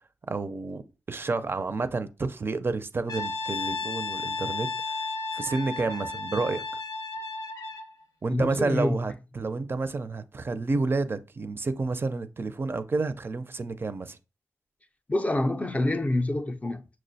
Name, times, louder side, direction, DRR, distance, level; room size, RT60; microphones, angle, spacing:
voice 1, 0.3-5.0 5.3-6.6 8.2-14.2, right 3 dB, 40° right, 0.4 m, -30 dB
Brass instrument, 3.1-7.9, left 3 dB, 80° left, 0.6 m, -33 dB
voice 2, 8.3-9.0 15.1-16.9, left 1 dB, 25° left, 0.4 m, -26 dB
5.9 x 2.0 x 2.7 m
cardioid pair, 50°, 6 cm